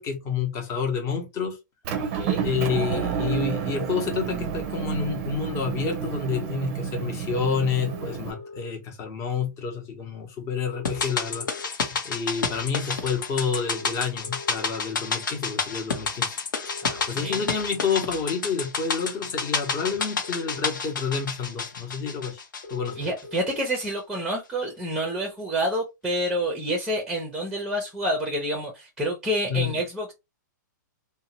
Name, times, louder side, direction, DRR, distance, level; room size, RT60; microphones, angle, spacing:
voice 1, 0.0-1.6 2.4-16.4 17.1-22.4 22.7-23.0 29.5-29.8, left 6 dB, 25° left, 0.9 m, -29 dB
Motor vehicle (road) / Engine, 1.8-8.3, right 8 dB, 40° right, 0.5 m, -30 dB
voice 2, 1.9-2.5 16.8-17.4 23.0-30.1, right 1 dB, 5° right, 0.6 m, -28 dB
sound 1, 7.7-8.7 10.6-11.7 13.6-14.6 16.6-17.6 19.6-20.6 22.6-23.6, left 3 dB, 55° left, 1.0 m, -42 dB
sound 2, 10.8-23.2 23.5-23.6, left 5 dB, 80° left, 0.8 m, -30 dB
2.7 x 2.1 x 2.8 m
hypercardioid pair, 135°, 10 cm